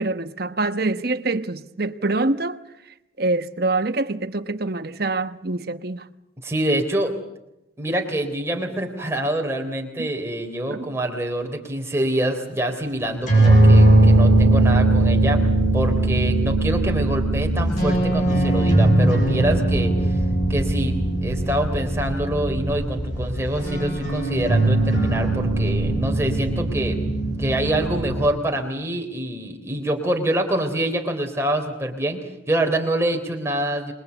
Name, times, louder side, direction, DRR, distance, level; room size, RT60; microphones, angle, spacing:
voice 1, 0.0-2.6 3.2-6.1 10.0-10.1 10.7-10.9, right 2 dB, 50° right, 1.1 m, -25 dB
voice 2, 6.4-7.2 7.8-15.4 15.7-20.2 20.5-27.0 27.4-33.9, right 1 dB, 15° right, 3.5 m, -25 dB
sound 1, 13.1-28.3, right 1 dB, 40° left, 7.7 m, -19 dB
27.5 x 22.5 x 8.2 m
head